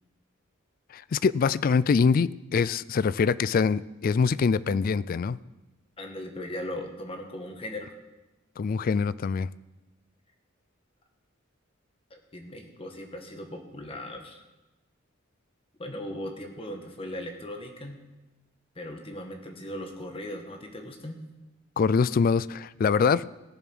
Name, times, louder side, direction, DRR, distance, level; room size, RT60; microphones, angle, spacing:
voice 1, 0.9-5.4 8.6-9.5 21.8-23.3, left 5 dB, 45° left, 0.3 m, -24 dB
voice 2, 6.0-7.9 12.1-14.4 15.8-18.0 18.7-21.2, left 1 dB, 30° left, 1.5 m, -38 dB
18.0 x 7.2 x 6.1 m
head